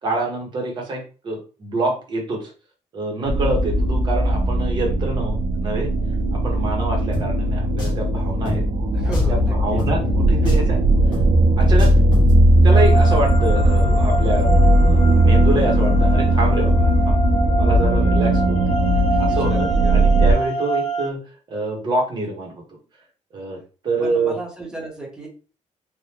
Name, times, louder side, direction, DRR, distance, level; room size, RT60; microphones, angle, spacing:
voice 1, 0.0-2.5 2.9-5.9 6.3-8.6 9.0-10.8 11.6-11.9 12.6-14.6 14.9-17.2 17.6-18.6 19.2-21.2 21.5-22.5 23.3-23.6 23.8-24.3, right 2 dB, 35° right, 0 dB, 1.1 m, -26 dB
sound 1, 3.3-20.3, right 1 dB, 70° right, 0.6 m, -17 dB
Drum, 7.1-7.3 7.8-8.0 8.5-8.6 9.1-9.4 9.8-9.9 10.5-10.7 11.1-11.3 11.8-12.3, equal, 35° left, 1.4 m, -27 dB
voice 2, 8.9-9.8 19.0-20.1 24.0-25.3, right 2 dB, 5° right, -3 dB, 1.2 m, -34 dB
sound 2, 12.7-21.1, right 2 dB, 55° left, 0.6 m, -27 dB
3.4 x 2.5 x 2.9 m, 0.35 s
cardioid pair, 180°, 13 cm